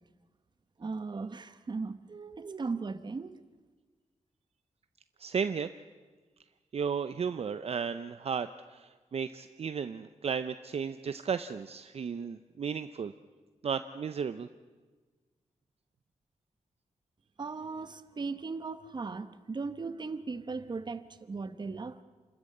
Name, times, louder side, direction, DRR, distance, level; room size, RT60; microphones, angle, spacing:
voice 1, 0.8-3.4 17.4-22.0, right 4 dB, 35° right, 1.0 m, -37 dB
voice 2, 5.2-5.7 6.7-8.5 8.8-13.1 13.6-14.5, right 6 dB, 55° right, 0.6 m, -34 dB
28.0 x 13.0 x 8.5 m
wide cardioid pair, 140°, 12 cm